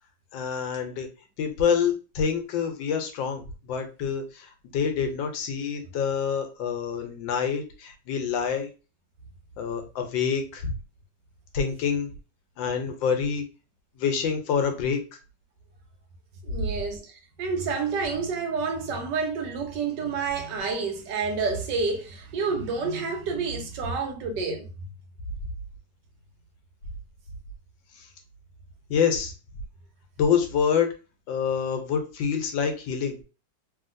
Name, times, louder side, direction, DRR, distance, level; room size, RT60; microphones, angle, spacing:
voice 1, 0.3-1.1 1.4-8.7 9.6-10.7 11.5-12.1 12.6-13.4 14.0-15.2 28.0-28.1 28.9-29.3 30.2-30.9 31.3-33.2, left 7 dB, 80° left, 1.4 m, -27 dB
voice 2, 16.4-24.7, right 4 dB, 70° right, 1.4 m, -29 dB
3.1 x 2.8 x 2.5 m
omnidirectional pair, 2.0 m